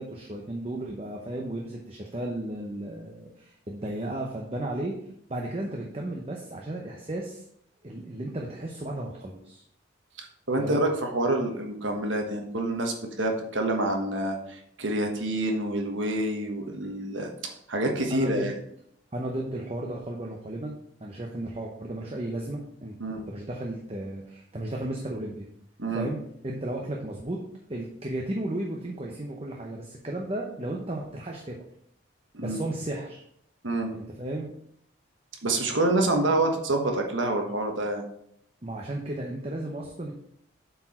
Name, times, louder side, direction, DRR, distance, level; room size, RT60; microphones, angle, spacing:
voice 1, 0.0-5.0 5.3-7.4 7.8-9.6 10.6-10.8 18.1-18.5 19.1-23.0 23.3-25.5 25.9-27.4 27.7-31.6 32.4-33.2 33.9-34.5 38.6-40.1, right 1 dB, 30° right, 0 dB, 0.8 m, -34 dB
voice 2, 10.2-18.5 23.0-23.2 25.8-26.1 32.3-32.6 33.6-33.9 35.4-38.1, right 2 dB, 85° right, 3 dB, 1.3 m, -27 dB
7.8 x 4.7 x 4.4 m, 0.71 s
head